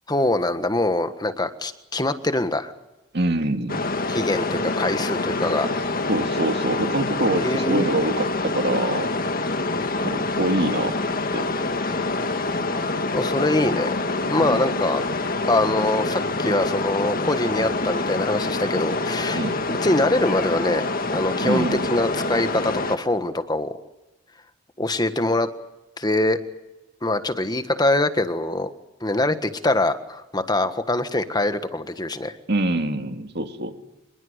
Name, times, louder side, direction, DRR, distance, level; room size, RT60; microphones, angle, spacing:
voice 1, 0.1-2.7 4.1-5.7 7.4-7.9 13.1-13.9 14.3-15.0 15.5-19.4 19.7-23.7 24.8-25.5 26.0-26.4 27.0-28.7 29.0-32.3, left 2 dB, 20° left, 9 dB, 1.6 m, -23 dB
voice 2, 3.1-3.9 6.1-9.1 10.0-10.9 11.3-11.5 14.4-14.7 19.3-19.6 21.4-21.9 32.5-33.7, right 2 dB, 55° right, 7 dB, 2.2 m, -25 dB
sound 1, 3.7-23.0, left 3 dB, 45° left, 1.7 m, -26 dB
26.0 x 22.0 x 8.2 m, 0.99 s
head